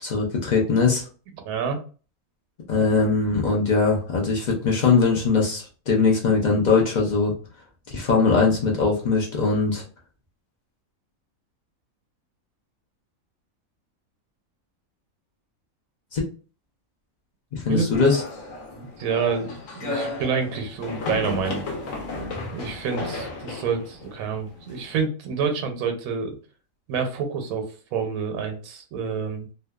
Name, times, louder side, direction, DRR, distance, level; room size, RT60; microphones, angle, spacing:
voice 1, 0.0-1.0 2.7-7.3 7.9-9.8 16.1-16.2 17.5-18.2, left 4 dB, 50° left, -2 dB, 0.5 m, -21 dB
voice 2, 1.4-1.8 17.7-17.9 18.7-21.6 22.5-26.4 26.9-29.5, right 6 dB, 85° right, 5 dB, 1.0 m, -28 dB
sound 1, 17.9-25.0, left 2 dB, 70° left, 1.1 m, -34 dB
2.7 x 2.2 x 2.2 m, 0.37 s
omnidirectional pair, 1.5 m